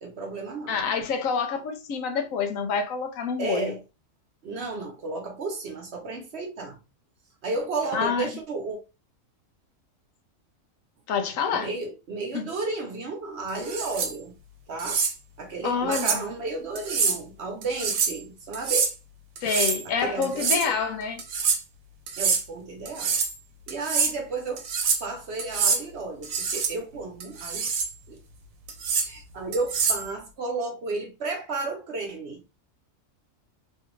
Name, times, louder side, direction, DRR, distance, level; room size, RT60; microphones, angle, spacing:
voice 1, 0.0-0.8 3.4-3.8 4.4-6.8 7.4-8.8 11.5-14.3 14.7-15.0 15.4-18.9 19.8-20.7 22.2-23.2 23.7-24.7 25.0-27.7 28.1-28.2 29.0-32.4, right 3 dB, 55° right, 1.1 m, -33 dB
voice 2, 0.7-3.7 7.9-8.3 11.1-11.7 12.3-12.4 15.6-16.2 19.4-21.2, left 5 dB, 75° left, 1.0 m, -27 dB
sound 1, 13.6-14.1 14.8-15.1 15.9-16.2 16.8-17.2 17.6-18.2 18.5-18.9 19.4-19.8 20.2-20.7 21.2-21.6 22.1-22.4 22.9-23.3 23.7-24.1 24.6-25.1 25.4-25.8 26.2-26.7 27.2-27.9 28.7-29.1 29.5-30.1, right 5 dB, 80° right, 1.1 m, -26 dB
3.3 x 2.3 x 3.0 m
omnidirectional pair, 1.4 m